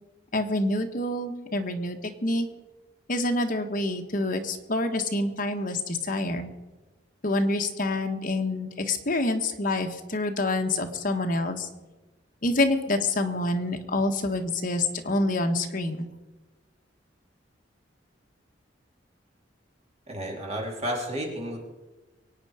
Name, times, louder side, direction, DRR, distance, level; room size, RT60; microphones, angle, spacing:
voice 1, 0.3-2.5 3.1-6.5 7.2-11.7 12.4-16.1, left 2 dB, 45° left, 4 dB, 1.5 m, -27 dB
voice 2, 20.1-21.6, equal, 35° right, 0 dB, 3.3 m, -32 dB
23.5 x 9.1 x 5.0 m, 1.1 s
head